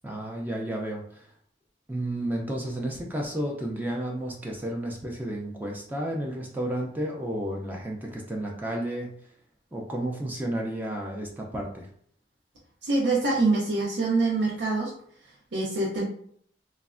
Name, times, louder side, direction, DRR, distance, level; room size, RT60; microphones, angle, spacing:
voice 1, 0.0-1.2 1.9-9.1 9.7-11.9, right 1 dB, 10° right, -1 dB, 0.3 m, -32 dB
voice 2, 12.8-14.9 15.5-16.0, right 3 dB, 75° right, -6 dB, 0.6 m, -25 dB
3.2 x 2.0 x 2.4 m, 0.62 s
head